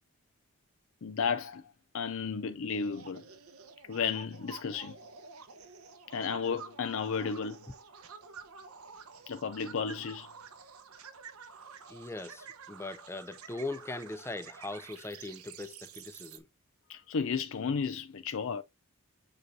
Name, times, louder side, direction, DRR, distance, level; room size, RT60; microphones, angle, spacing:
voice 1, 1.0-1.6 1.9-3.2 3.9-5.0 6.1-7.6 9.3-10.3 16.9-18.6, left 6 dB, 65° left, 0.4 m, -33 dB
sound 1, 2.7-16.4, right 5 dB, 85° right, 1.1 m, -50 dB
voice 2, 11.9-16.5, left 2 dB, 10° left, 0.5 m, -40 dB
7.6 x 4.6 x 2.7 m
head